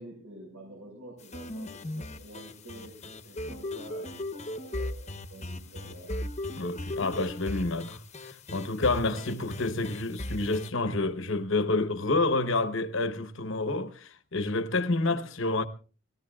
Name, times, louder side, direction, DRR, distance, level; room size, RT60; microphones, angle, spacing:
voice 1, 0.0-6.2 9.0-9.5 15.0-15.2, right 1 dB, 80° right, 6.4 m, -48 dB
sound 1, 1.2-10.7, left 1 dB, 30° left, 1.0 m, -38 dB
voice 2, 6.6-15.7, left 2 dB, 60° left, 1.1 m, -29 dB
28.0 x 18.0 x 2.4 m
head